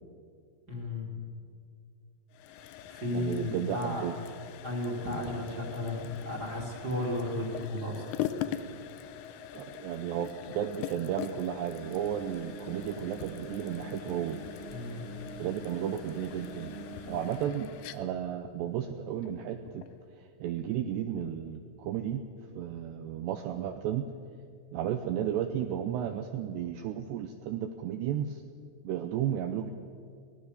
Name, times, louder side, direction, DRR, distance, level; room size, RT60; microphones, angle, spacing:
voice 1, 0.7-1.1 2.5-4.0 4.6-8.1 14.7-15.0, left 1 dB, 25° right, -1 dB, 2.6 m, -34 dB
sound 1, 2.3-20.0, left 10 dB, 80° left, 2.6 m, -42 dB
voice 2, 3.1-4.1 9.5-14.4 15.4-16.8 17.1-19.8 20.4-22.2 22.6-24.0 24.7-28.4 28.8-29.7, right 10 dB, 80° right, 7 dB, 2.5 m, -33 dB
sound 2, 11.7-17.5, right 3 dB, 50° right, 3.0 m, -45 dB
24.0 x 17.5 x 6.7 m, 2.2 s
omnidirectional pair, 5.8 m